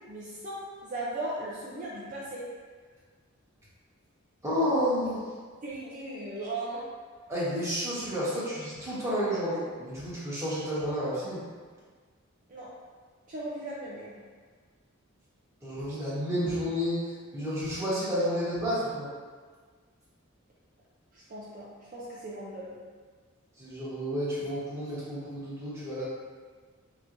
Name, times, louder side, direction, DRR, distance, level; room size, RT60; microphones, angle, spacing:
voice 1, 0.1-2.4 5.6-6.9 12.5-12.7 13.3-14.2 21.1-22.8, right 1 dB, 40° right, -7 dB, 0.6 m, -37 dB
voice 2, 4.4-5.3 7.3-11.4 15.6-17.1 17.3-19.1 23.6-26.0, equal, 15° right, -10 dB, 1.2 m, -30 dB
5.0 x 3.0 x 2.6 m, 1.6 s
head